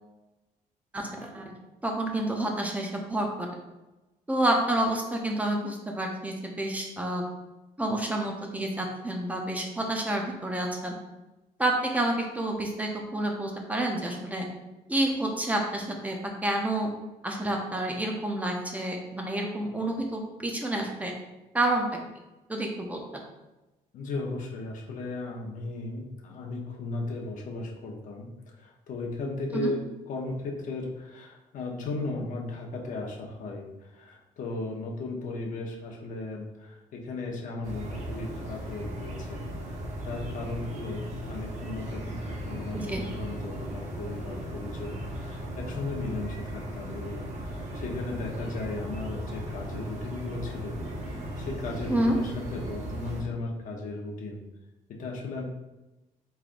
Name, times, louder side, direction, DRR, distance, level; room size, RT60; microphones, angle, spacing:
voice 1, 0.9-1.4 1.8-3.5 4.3-7.2 7.8-11.0 11.6-14.5 14.9-16.2 16.4-16.9 17.2-21.1 21.5-22.0 22.5-23.2 29.5-29.7 42.7-43.0 51.9-52.1, right 1 dB, 10° right, 1 dB, 0.5 m, -29 dB
voice 2, 23.9-28.3 28.6-39.8 40.0-54.4 54.9-55.4, left 3 dB, 60° left, -1 dB, 0.7 m, -36 dB
sound 1, 37.6-53.2, right 1 dB, 55° right, 0.8 m, -37 dB
3.6 x 3.3 x 2.5 m, 1.0 s
cardioid pair, 130°, 15 cm